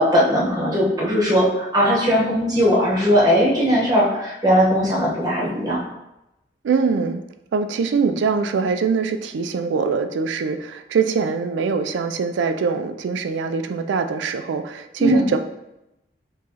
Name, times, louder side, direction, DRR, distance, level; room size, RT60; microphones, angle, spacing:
voice 1, 0.0-5.8 15.0-15.2, equal, 20° right, -5 dB, 1.0 m, -18 dB
voice 2, 6.6-7.2 7.5-15.4, right 5 dB, 90° right, 8 dB, 0.3 m, -23 dB
4.3 x 3.0 x 2.8 m, 0.90 s
head